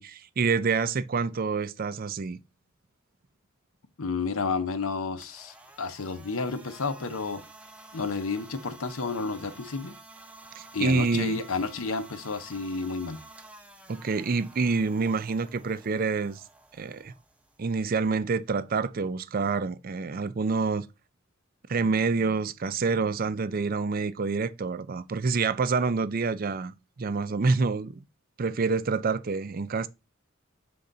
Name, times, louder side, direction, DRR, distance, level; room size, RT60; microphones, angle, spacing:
voice 1, 0.0-2.4 10.6-11.4 13.9-16.4 16.7-17.1 17.6-20.8 21.7-28.0 28.4-29.9, right 4 dB, 45° right, 0.5 m, -27 dB
voice 2, 4.0-7.4 7.9-9.9 10.7-13.2, left 4 dB, 90° left, 0.8 m, -31 dB
sound 1, 5.2-19.1, right 2 dB, 5° right, 0.7 m, -51 dB
6.9 x 3.8 x 3.9 m
head